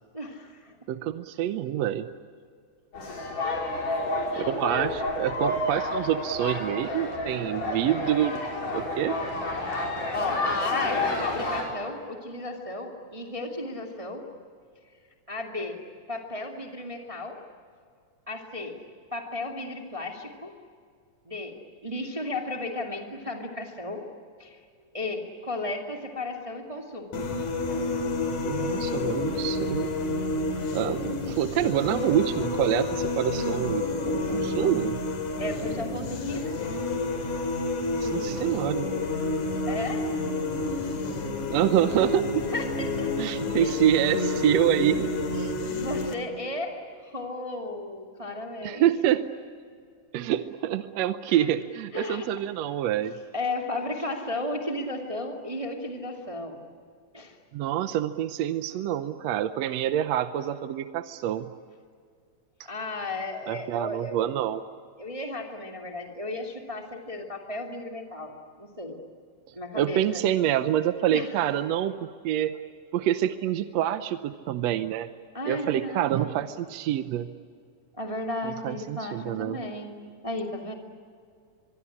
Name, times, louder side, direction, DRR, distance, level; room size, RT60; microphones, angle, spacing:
voice 1, 0.1-0.7 3.4-3.7 4.3-5.1 7.3-7.4 10.1-14.3 15.3-15.8 16.1-17.4 18.3-18.8 19.1-20.5 21.3-21.6 21.8-24.1 24.4-24.6 24.9-27.2 27.7-27.9 35.4-36.5 39.7-40.1 42.5-43.1 43.6-44.0 45.8-48.9 51.3-51.5 51.9-52.3 53.3-56.6 57.1-57.4 62.6-64.1 65.0-69.0 69.5-70.2 71.1-71.3 75.3-76.3 78.0-80.0 80.2-80.7, left 2 dB, 10° right, 2 dB, 2.0 m, -34 dB
voice 2, 0.9-2.1 4.3-8.4 8.7-9.2 28.4-29.9 30.7-35.0 38.0-38.9 41.5-42.4 43.2-45.5 48.6-49.3 50.1-53.1 57.5-61.5 63.5-64.6 69.7-72.6 72.9-75.1 75.5-77.3 78.4-79.6, right 11 dB, 70° right, 10 dB, 1.8 m, -26 dB
sound 1, 2.9-11.6, left 1 dB, 90° left, 7.1 m, -30 dB
sound 2, 27.1-46.1, left 2 dB, 70° left, 3.8 m, -29 dB
24.0 x 24.0 x 9.9 m, 2.2 s
omnidirectional pair, 3.5 m